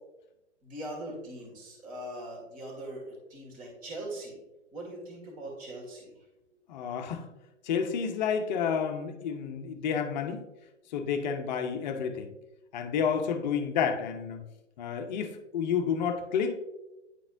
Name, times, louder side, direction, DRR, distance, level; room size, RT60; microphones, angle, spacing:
voice 1, 0.6-4.4 4.7-6.1, right 1 dB, 20° right, -1 dB, 1.9 m, -41 dB
voice 2, 6.7-7.3 7.6-10.4 10.9-12.3 12.7-14.4 14.8-16.6, left 7 dB, 40° left, 7 dB, 0.7 m, -30 dB
9.8 x 4.0 x 2.6 m, 0.97 s
figure-of-eight pair, 125°, 36 cm